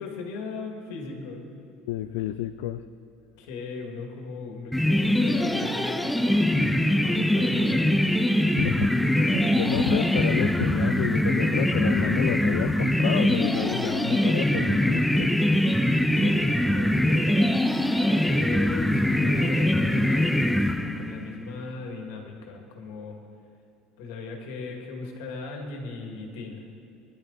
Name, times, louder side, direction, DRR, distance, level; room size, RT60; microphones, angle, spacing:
voice 1, 0.0-1.5 3.4-8.2 16.1-23.2 24.0-26.7, left 3 dB, 75° left, 2 dB, 2.2 m, -37 dB
voice 2, 1.9-2.8 8.6-8.9 9.1-15.6, left 14 dB, 90° left, 11 dB, 0.4 m, -30 dB
sound 1, 4.7-21.3, left 1 dB, ahead, 0.3 m, -23 dB
20.0 x 11.0 x 4.1 m, 2.4 s
cardioid pair, 175°, 0 cm